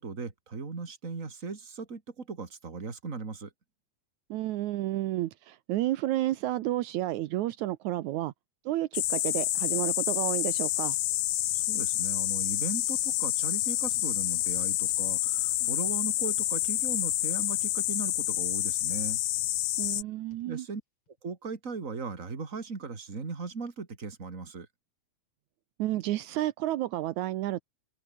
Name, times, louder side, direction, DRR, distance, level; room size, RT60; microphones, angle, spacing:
voice 1, 0.0-3.5 11.5-19.2 20.5-20.8 21.2-24.7, right 4 dB, 25° right, 2.9 m, -38 dB
voice 2, 4.3-8.3 8.7-11.0 19.8-20.7 25.8-27.6, right 15 dB, 80° right, 2.2 m, -31 dB
sound 1, 8.9-20.0, left 15 dB, 70° left, 1.8 m, -28 dB
sound 2, 11.4-20.5 21.1-21.2 21.9-22.0, left 2 dB, 45° left, 9.0 m, -58 dB
open air
omnidirectional pair, 3.4 m